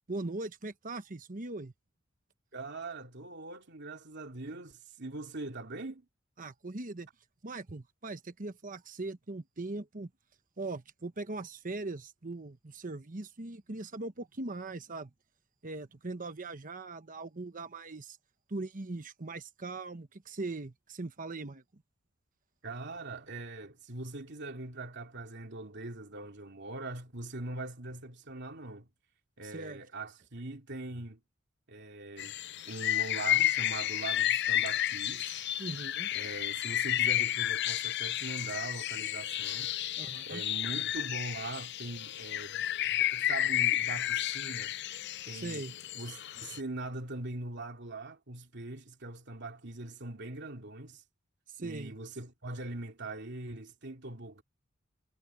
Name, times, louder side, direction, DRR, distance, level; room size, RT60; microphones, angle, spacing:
voice 1, 0.1-1.7 6.4-7.1 7.4-10.1 10.6-15.1 15.6-18.2 18.5-21.8 29.4-29.8 35.6-36.1 40.0-40.4 45.3-45.7 51.6-52.0, right 2 dB, 40° right, 1.1 m, -40 dB
voice 2, 2.5-6.1 22.6-28.9 29.4-31.2 31.7-32.4 32.7-35.3 36.1-39.7 40.3-44.8 45.3-45.7 45.9-51.0 51.6-54.4, right 2 dB, 60° right, 2.9 m, -42 dB
sound 1, 32.2-46.6, left 12 dB, 55° left, 0.6 m, -32 dB
head